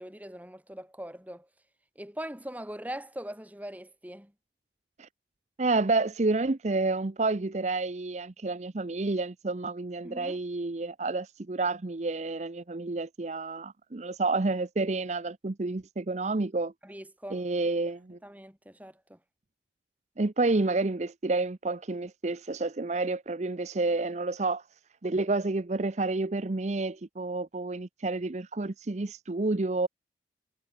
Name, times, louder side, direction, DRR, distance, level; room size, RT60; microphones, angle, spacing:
voice 1, 0.0-1.5 2.0-4.3 10.0-10.4 16.8-17.7 18.2-19.2, right 1 dB, 10° right, 5.6 m, -41 dB
voice 2, 5.6-16.7 17.3-18.2 20.2-24.6 25.0-29.9, right 3 dB, 40° right, 0.6 m, -29 dB
head